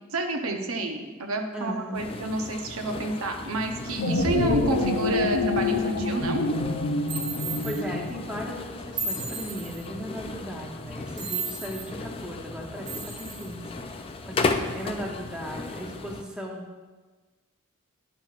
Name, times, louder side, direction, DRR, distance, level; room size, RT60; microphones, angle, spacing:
voice 1, 0.1-6.4, right 2 dB, 75° right, 4 dB, 0.7 m, -29 dB
voice 2, 1.5-2.0 7.6-13.6 14.2-16.9, equal, 5° right, -1 dB, 0.7 m, -37 dB
sound 1, 1.9-16.2, left 3 dB, 25° left, 0.3 m, -36 dB
sound 2, 3.8-8.4, left 3 dB, 85° left, 0.6 m, -27 dB
sound 3, 7.1-7.8 9.0-9.8 11.2-11.9 12.9-13.5, right 4 dB, 55° right, 1.2 m, -34 dB
10.5 x 5.9 x 2.4 m, 1.3 s
head